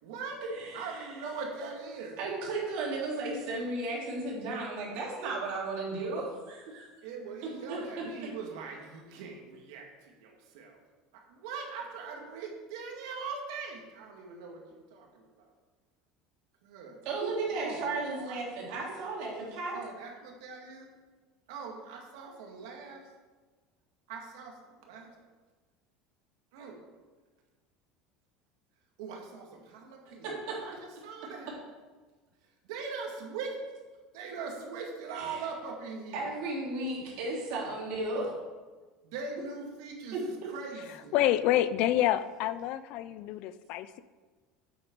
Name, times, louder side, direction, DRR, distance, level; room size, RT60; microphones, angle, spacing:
voice 1, 0.0-0.4 0.7-2.2 7.0-10.8 11.1-15.5 16.6-17.1 17.4-18.4 19.7-20.9 21.5-23.0 24.1-25.1 26.5-26.8 29.0-31.5 32.6-33.6 34.1-36.3 39.0-41.3, right 4 dB, 80° right, 1 dB, 1.9 m, -41 dB
voice 2, 0.5-1.1 2.2-6.9 7.7-7.8 17.0-19.8 30.2-30.6 35.2-35.4 36.1-38.3 40.1-40.2, right 2 dB, 55° right, -3 dB, 3.0 m, -34 dB
voice 3, 41.1-44.0, left 12 dB, 45° left, 14 dB, 0.4 m, -28 dB
8.6 x 7.9 x 4.6 m, 1.3 s
cardioid pair, 175°, 2 cm